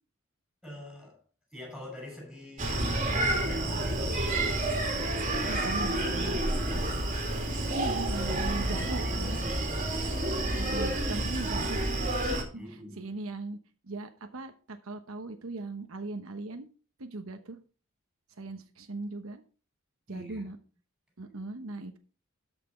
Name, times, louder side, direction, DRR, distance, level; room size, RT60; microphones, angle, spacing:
voice 1, 0.6-1.2 1.5-4.7 5.2-7.2 7.9-10.0 12.5-13.1 20.1-20.5, left 1 dB, ahead, 6.3 m, -45 dB
Screaming, 2.6-12.4, right 1 dB, 35° right, 2.6 m, -29 dB
voice 2, 5.5-6.4 7.7-9.4 10.6-11.8 12.7-13.6 13.8-16.7 17.0-17.6 18.4-19.4 20.1-20.6 21.2-22.0, right 2 dB, 75° right, 1.0 m, -39 dB
13.0 x 6.0 x 4.4 m
head